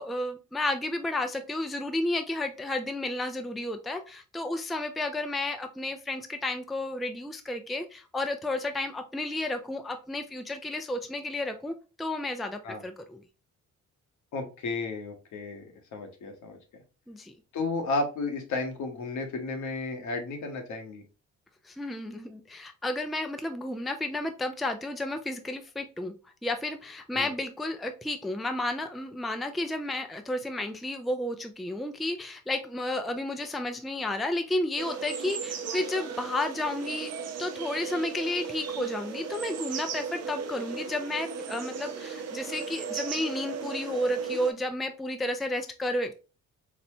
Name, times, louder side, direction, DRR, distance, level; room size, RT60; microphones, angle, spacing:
voice 1, 0.0-13.2 17.1-17.3 21.6-26.1 26.4-46.1, left 1 dB, ahead, 6 dB, 0.4 m, -32 dB
voice 2, 14.3-16.6 17.5-21.0 27.1-27.3, left 3 dB, 70° left, 4 dB, 1.0 m, -33 dB
sound 1, 34.8-44.5, right 6 dB, 55° right, 0.6 m, -36 dB
4.0 x 2.1 x 2.7 m, 0.33 s
cardioid pair, 90°, 30 cm